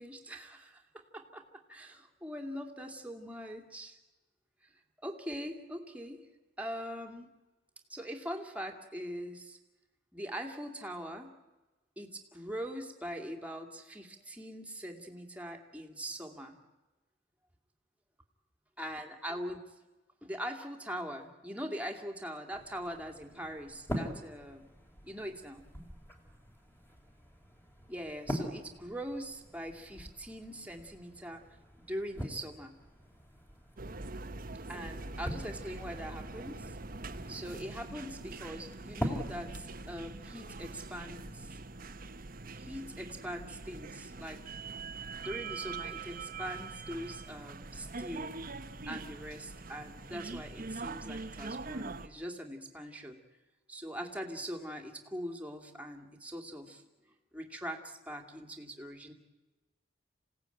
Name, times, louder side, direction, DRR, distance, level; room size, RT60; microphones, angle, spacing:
voice 1, 0.0-4.0 5.0-6.2 6.6-7.3 7.9-9.6 10.1-11.3 12.0-16.6 18.8-19.6 20.2-24.7 25.0-25.6 27.9-31.4 31.8-32.7 34.7-36.8 37.3-41.5 42.6-44.4 45.2-48.4 48.9-53.2 53.7-56.8 57.3-59.1, equal, 10° right, 4 dB, 2.4 m, -42 dB
sound 1, 22.5-40.5, equal, 10° left, 3.5 m, -44 dB
sound 2, 33.8-52.1, right 3 dB, 50° right, 1.1 m, -43 dB
27.5 x 17.0 x 9.1 m, 1.1 s
head